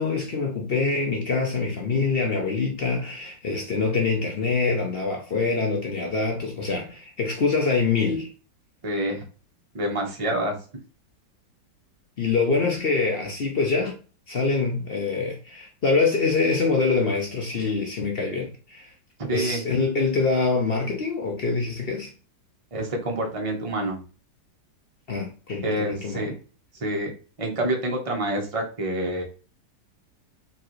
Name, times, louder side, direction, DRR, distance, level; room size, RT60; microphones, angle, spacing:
voice 1, 0.0-8.3 12.2-14.0 14.3-18.9 19.3-22.1 25.1-26.3, left 4 dB, 60° left, 0.6 m, -25 dB
voice 2, 8.8-9.2 9.7-10.6 19.3-19.6 22.7-24.0 25.6-26.3 26.8-27.1 27.4-29.2, right 1 dB, 25° right, 0.9 m, -27 dB
4.6 x 3.2 x 3.1 m
omnidirectional pair, 2.0 m